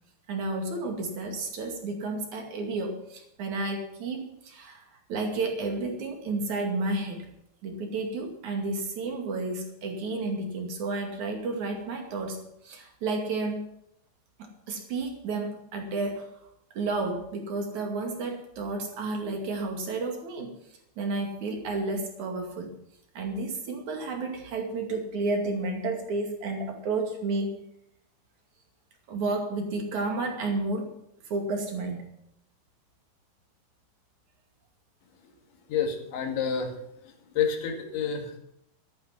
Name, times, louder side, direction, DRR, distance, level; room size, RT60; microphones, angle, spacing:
voice 1, 0.3-7.3 7.6-13.6 14.4-16.3 16.7-20.5 21.0-22.7 23.1-27.6 29.1-30.9 31.2-32.1, right 3 dB, 45° right, 3 dB, 3.0 m, -31 dB
voice 2, 35.7-36.7 37.1-38.4, left 7 dB, 75° left, 3 dB, 4.3 m, -29 dB
14.0 x 12.0 x 5.9 m, 0.78 s
omnidirectional pair, 5.5 m